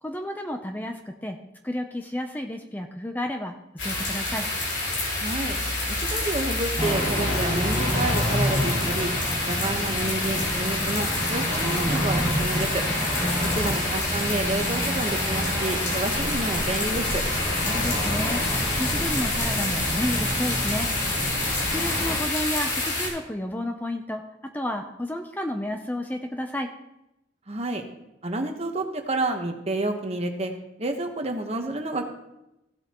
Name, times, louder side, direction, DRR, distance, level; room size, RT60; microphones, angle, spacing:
voice 1, 0.0-1.4 1.6-4.5 13.2-13.7 17.7-18.4 18.8-20.9 21.7-26.7, left 1 dB, 10° left, 4 dB, 0.5 m, -31 dB
sound 1, 3.8-23.1, left 2 dB, 70° left, 3.6 m, -28 dB
voice 2, 5.2-5.6 5.9-9.1 9.5-12.8 13.6-17.2 27.5-27.8 28.2-30.5 30.8-32.1, right 2 dB, 35° right, 4 dB, 1.1 m, -29 dB
sound 2, 6.8-22.2, equal, 40° left, 3.7 m, -29 dB
16.0 x 7.8 x 3.0 m, 0.91 s
head